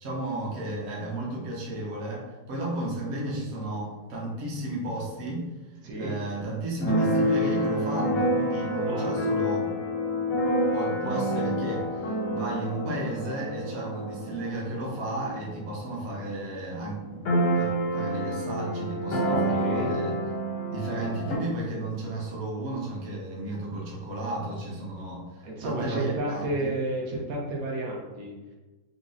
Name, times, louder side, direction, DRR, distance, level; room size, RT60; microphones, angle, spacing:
voice 1, 0.0-5.5 6.0-9.7 10.7-20.1 20.7-26.7, right 1 dB, 60° right, -3 dB, 0.9 m, -33 dB
Keyboard (musical), 6.8-16.4 16.6-16.7 16.9-21.4, equal, 85° left, 1.2 m, -28 dB
voice 2, 8.8-9.2 19.3-19.9 25.4-28.3, right 1 dB, 80° right, -2 dB, 1.1 m, -31 dB
3.8 x 2.0 x 2.5 m, 1.2 s
omnidirectional pair, 1.5 m